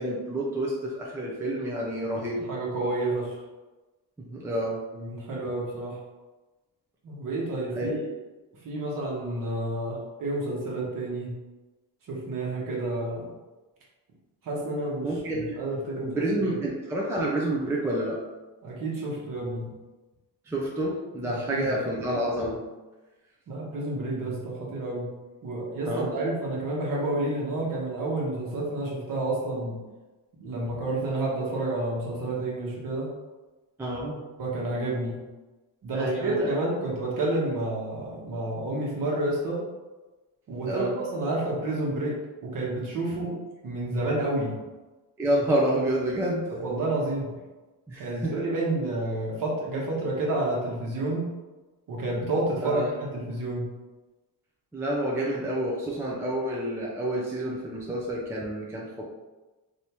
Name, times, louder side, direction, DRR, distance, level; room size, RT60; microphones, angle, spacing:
voice 1, 0.0-2.5 4.3-4.8 7.7-7.9 15.0-18.2 20.5-22.6 25.9-26.1 33.8-34.2 35.9-36.5 40.7-40.9 45.2-46.5 47.9-48.3 52.6-52.9 54.7-59.1, right 1 dB, 5° right, -4 dB, 0.4 m, -29 dB
voice 2, 2.1-3.3 4.9-6.0 7.0-8.0 8.6-11.3 12.1-13.3 14.4-15.1 15.3-16.2 18.6-19.7 21.2-21.7 23.5-25.1 25.4-29.8 30.4-33.1 34.4-35.2 35.8-39.6 40.5-43.4 43.6-44.6 46.5-47.3 48.0-51.3 51.9-52.8 53.1-53.7, right 2 dB, 50° right, -4 dB, 1.1 m, -30 dB
3.3 x 2.7 x 2.9 m, 1.2 s
cardioid pair, 135°, 42 cm